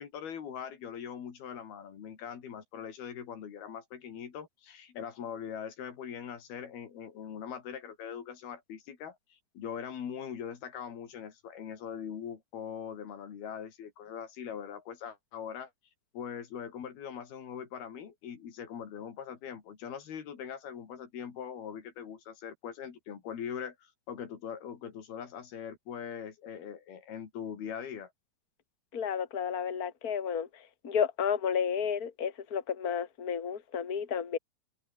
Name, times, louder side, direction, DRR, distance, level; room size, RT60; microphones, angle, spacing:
voice 1, 0.0-15.7 16.1-28.1, left 8 dB, 85° left, 5.0 m, -41 dB
voice 2, 28.9-34.4, left 7 dB, 30° left, 2.4 m, -32 dB
omnidirectional pair, 4.3 m